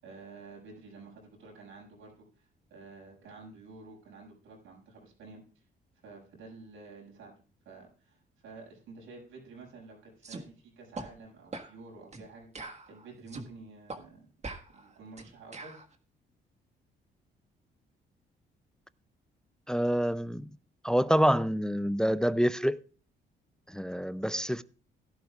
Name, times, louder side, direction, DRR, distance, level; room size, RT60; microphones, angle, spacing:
voice 1, 0.0-5.4 6.0-7.3 7.6-12.5 12.9-14.3 14.7-15.8, right 3 dB, 90° right, 6.3 m, -50 dB
sound 1, 10.2-10.4 10.9-11.1 11.5-11.7 12.1-12.3 12.5-13.5 13.9-14.0 14.4-15.8, right 3 dB, 35° right, 1.7 m, -42 dB
voice 2, 19.7-20.4 20.8-22.8 23.7-24.6, equal, 5° left, 0.4 m, -27 dB
17.0 x 11.5 x 2.4 m
cardioid pair, 90°, 20 cm